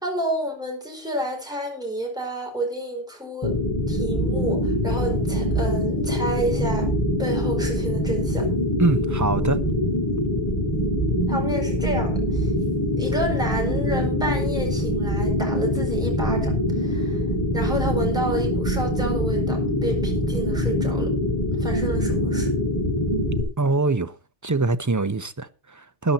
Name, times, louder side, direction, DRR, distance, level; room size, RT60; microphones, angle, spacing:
voice 1, 0.0-3.6 3.9-6.9 7.2-8.5 11.3-12.5 13.0-17.2 17.5-21.1 21.5-22.5, right 1 dB, 5° right, 4.4 m, -30 dB
sound 1, 3.4-23.4, left 1 dB, 25° left, 3.5 m, -24 dB
voice 2, 8.8-9.6 23.6-24.1 24.4-26.1, right 3 dB, 25° right, 0.4 m, -23 dB
13.5 x 10.5 x 4.1 m
omnidirectional pair, 1.2 m